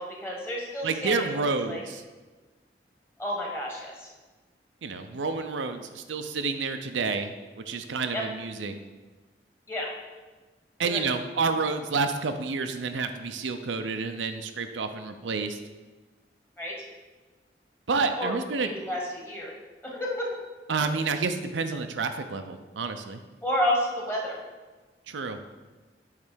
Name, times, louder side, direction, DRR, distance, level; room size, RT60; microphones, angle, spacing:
voice 1, 0.0-1.8 3.2-4.1 8.1-8.2 9.7-9.9 10.8-11.0 16.6-16.7 18.2-18.3 18.6-19.5 19.8-20.3 23.4-24.4, left 1 dB, 15° left, -2 dB, 1.4 m, -30 dB
voice 2, 0.8-2.0 4.8-8.8 10.8-15.6 17.9-18.7 20.7-23.2 25.1-25.4, right 4 dB, 90° right, 7 dB, 0.6 m, -29 dB
8.6 x 3.3 x 6.2 m, 1.3 s
head